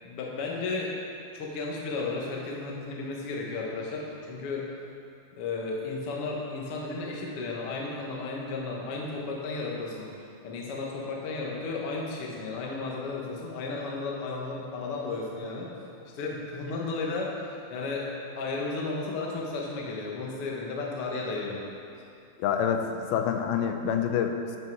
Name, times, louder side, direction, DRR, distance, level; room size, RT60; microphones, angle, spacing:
voice 1, 0.0-0.9 1.3-4.7 5.4-10.1 10.4-15.7 16.1-21.6, left 3 dB, 65° left, -2 dB, 1.4 m, -34 dB
voice 2, 22.4-24.6, left 7 dB, 90° left, 5 dB, 2.5 m, -27 dB
11.0 x 5.5 x 4.7 m, 2.6 s
omnidirectional pair, 4.3 m